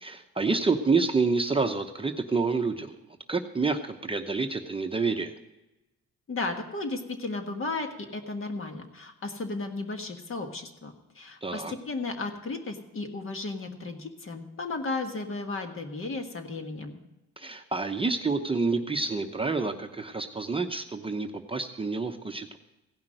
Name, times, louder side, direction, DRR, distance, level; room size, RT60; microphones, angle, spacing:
voice 1, 0.0-2.9 3.3-5.3 11.4-11.7 17.4-22.6, right 4 dB, 20° right, 5 dB, 0.8 m, -28 dB
voice 2, 6.3-17.0, left 3 dB, 45° left, 5 dB, 1.6 m, -34 dB
16.0 x 5.8 x 7.6 m, 1.0 s
cardioid pair, 90°, 30 cm